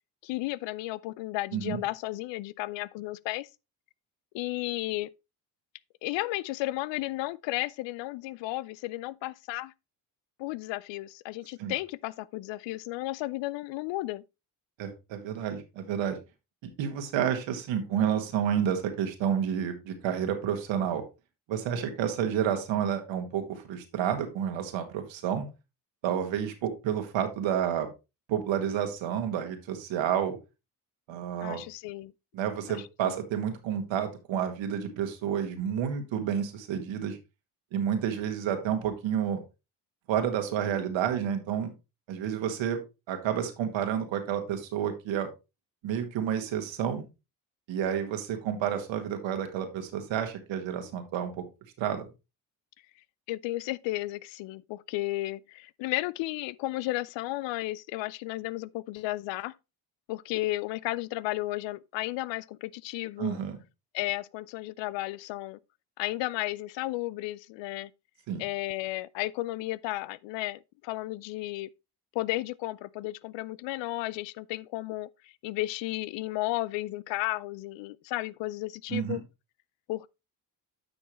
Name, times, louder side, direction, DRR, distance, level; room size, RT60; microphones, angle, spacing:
voice 1, 0.2-3.5 4.3-5.1 6.0-9.7 10.4-14.2 31.4-32.1 32.7-33.2 53.3-59.5 60.1-63.4 63.9-65.6 66.0-67.9 68.4-71.7 72.1-79.2 79.9-80.1, left 18 dB, 65° left, 0.5 m, -33 dB
voice 2, 14.8-16.2 16.6-21.0 21.5-25.4 26.0-27.9 28.3-30.4 31.1-31.6 32.3-37.2 37.7-39.4 40.1-41.7 42.1-42.8 43.1-45.3 45.8-47.0 47.7-51.4 51.8-52.1 63.2-63.6 68.3-68.4 78.9-79.2, right 9 dB, 65° right, 1.9 m, -30 dB
9.7 x 6.4 x 3.1 m
hypercardioid pair, 55°, 48 cm